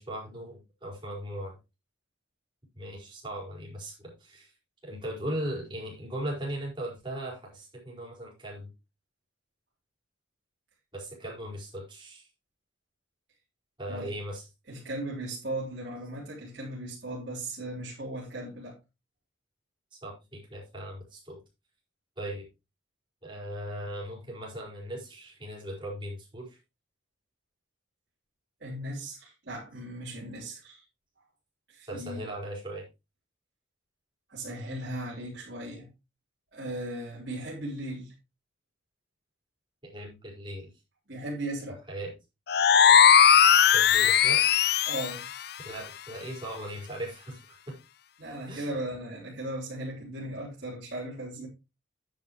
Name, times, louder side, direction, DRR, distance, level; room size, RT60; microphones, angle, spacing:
voice 1, 0.0-1.5 2.7-4.5 4.8-8.7 10.9-12.2 13.8-14.4 19.9-21.4 22.2-22.4 23.2-26.6 31.9-32.8 39.8-40.7 41.9-42.1 43.7-44.4 45.6-47.7 48.5-48.7, right 1 dB, 25° right, 5.0 m, -38 dB
voice 2, 14.7-18.8 28.6-30.8 31.7-32.3 34.3-35.9 36.5-38.1 41.1-41.8 44.9-45.3 48.2-51.5, right 1 dB, 55° right, 3.8 m, -37 dB
sound 1, 42.5-45.2, left 8 dB, 50° left, 0.5 m, -19 dB
10.5 x 9.1 x 3.1 m
head